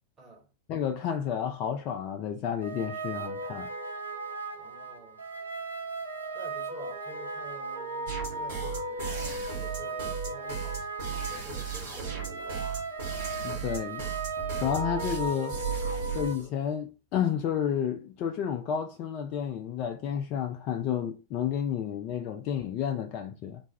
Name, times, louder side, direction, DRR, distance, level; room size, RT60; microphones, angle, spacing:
voice 1, 0.2-0.5 4.5-5.2 6.3-9.1 9.5-12.8, right 1 dB, 20° right, 1.3 m, -49 dB
voice 2, 0.7-3.7 13.4-14.0 14.6-15.6 16.1-23.6, left 8 dB, 40° left, 0.3 m, -31 dB
sound 1, 2.6-16.3, right 3 dB, 85° right, 0.7 m, -36 dB
sound 2, 8.1-16.5, right 7 dB, 55° right, 1.6 m, -36 dB
3.3 x 2.2 x 4.0 m
figure-of-eight pair, 90°, 0 cm